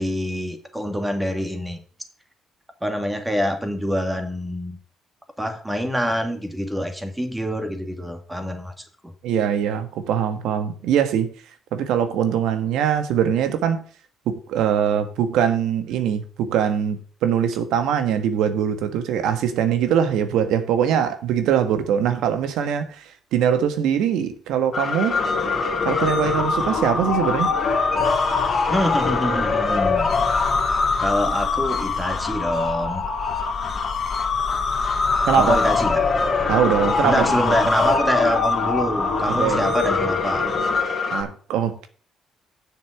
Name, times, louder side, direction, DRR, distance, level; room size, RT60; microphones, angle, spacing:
voice 1, 0.0-1.8 2.8-4.8 5.4-8.9 28.7-30.1 31.0-33.1 35.3-36.1 37.0-40.5, equal, 10° right, 2.0 m, -25 dB
voice 2, 9.2-11.3 11.7-13.8 14.3-25.2 25.8-27.5 35.3-35.6 36.5-37.6 39.3-39.6 41.1-41.9, right 8 dB, 85° right, 1.4 m, -22 dB
sound 1, 24.7-41.2, left 4 dB, 40° left, 2.8 m, -22 dB
7.1 x 6.5 x 7.8 m
cardioid pair, 100°, 0 cm